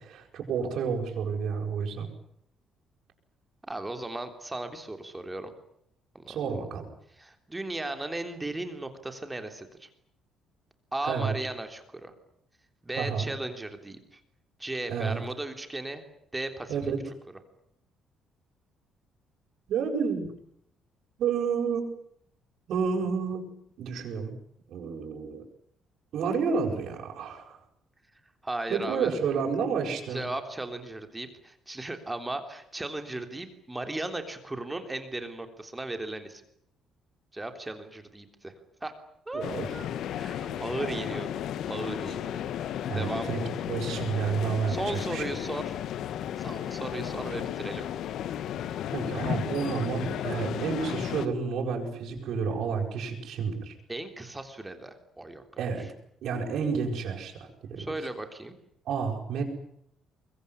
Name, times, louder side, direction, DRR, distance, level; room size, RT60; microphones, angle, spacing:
voice 1, 0.0-2.1 6.3-6.8 11.0-11.3 13.0-13.3 14.9-15.2 16.7-17.0 19.7-20.3 21.2-21.9 22.7-23.4 23.8-24.4 24.7-25.4 26.1-27.6 28.7-30.3 39.3-39.7 40.5-40.6 40.9-41.0 42.9-45.2 48.9-53.7 55.6-55.9 56.2-57.9 58.8-59.4, right 6 dB, 60° right, -1 dB, 7.7 m, -30 dB
voice 2, 3.6-5.5 6.1-6.7 7.1-9.9 10.9-12.1 12.8-14.2 14.6-16.0 16.3-16.8 28.4-29.2 30.1-36.4 37.3-38.5 38.8-38.9 39.3-41.3 41.7-42.4 42.9-43.3 44.7-45.8 46.4-47.9 53.9-55.4 57.8-58.5, right 2 dB, 10° right, 7 dB, 3.4 m, -36 dB
sound 1, 39.4-51.3, left 10 dB, 65° left, 1.3 m, -34 dB
24.0 x 22.5 x 9.9 m, 0.70 s
cardioid pair, 150°, 0 cm